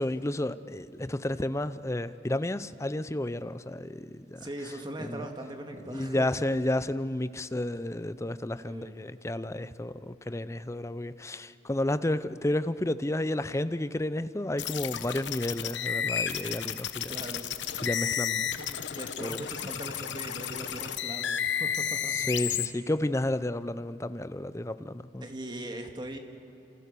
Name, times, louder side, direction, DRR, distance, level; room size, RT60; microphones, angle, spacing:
voice 1, 0.0-4.5 5.0-5.3 5.9-17.1 17.8-18.5 19.2-19.4 22.1-25.2, left 1 dB, 15° left, 0.6 m, -31 dB
voice 2, 4.4-6.5 8.7-8.9 17.1-17.7 18.4-22.2 25.2-26.2, right 1 dB, 25° right, 2.0 m, -40 dB
sound 1, 14.6-22.7, left 8 dB, 80° left, 1.1 m, -32 dB
29.0 x 27.0 x 6.8 m
head